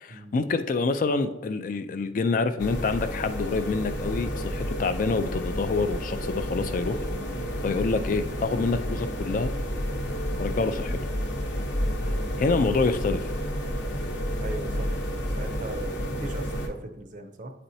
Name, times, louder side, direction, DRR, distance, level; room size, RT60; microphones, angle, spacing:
voice 1, 0.0-7.0 7.6-9.5 10.4-11.0 12.4-13.3, left 4 dB, 45° left, 10 dB, 0.3 m, -27 dB
sound 1, 2.6-16.7, equal, 75° left, 0.9 m, -30 dB
voice 2, 7.3-7.7 12.0-12.3 14.4-17.5, right 2 dB, 40° right, 7 dB, 0.5 m, -39 dB
8.7 x 4.3 x 2.7 m, 0.95 s
head